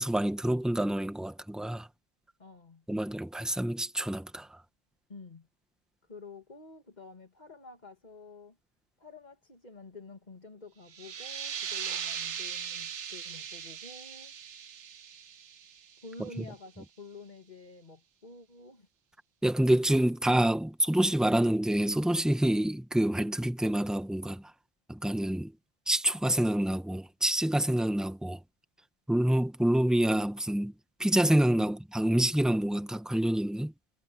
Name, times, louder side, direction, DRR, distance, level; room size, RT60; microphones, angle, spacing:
voice 1, 0.0-1.9 2.9-4.6 19.4-24.4 24.9-25.5 25.9-28.4 29.1-30.7 31.0-33.7, right 1 dB, ahead, 1.1 m, -27 dB
voice 2, 2.4-2.8 5.1-5.5 6.0-8.6 9.0-14.3 16.0-18.9, left 3 dB, 35° left, 2.5 m, -49 dB
sound 1, 10.9-16.3, right 8 dB, 75° right, 1.2 m, -39 dB
omnidirectional pair, 1.2 m